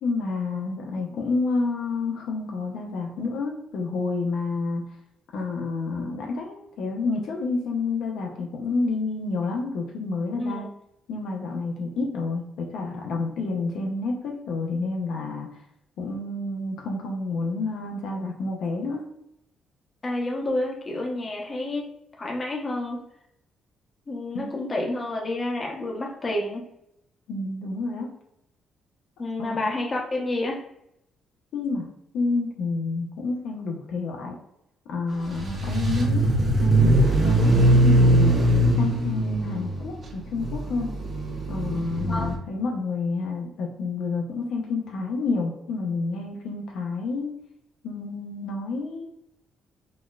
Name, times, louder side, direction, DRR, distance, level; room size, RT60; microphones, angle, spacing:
voice 1, 0.0-4.8 5.3-10.7 11.1-15.5 16.0-19.0 24.3-24.5 27.3-28.1 29.4-29.7 31.5-31.9 32.1-34.4 34.9-36.3 36.6-36.9 37.2-40.9 41.5-47.3 47.8-49.1, left 3 dB, 80° left, 1 dB, 0.5 m, -29 dB
voice 2, 20.0-21.9 22.2-23.0 24.1-26.6 29.2-30.6 42.1-42.3, left 2 dB, 30° left, 0 dB, 0.8 m, -29 dB
sound 1, 35.3-42.4, right 1 dB, 40° right, 0.8 m, -21 dB
4.0 x 2.1 x 2.3 m, 0.79 s
cardioid pair, 90°, 0 cm